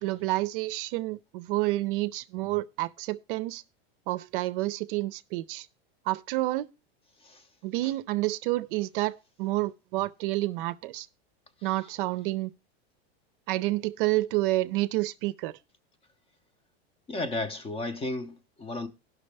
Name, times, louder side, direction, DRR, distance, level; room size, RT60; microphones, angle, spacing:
voice 1, 0.0-3.6 4.1-5.7 6.1-6.7 7.6-11.1 11.6-12.5 13.5-15.5, right 18 dB, 55° right, 0.5 m, -29 dB
voice 2, 17.1-18.9, left 2 dB, 20° left, 0.6 m, -33 dB
17.0 x 6.0 x 3.3 m
supercardioid pair, 135°, 31 cm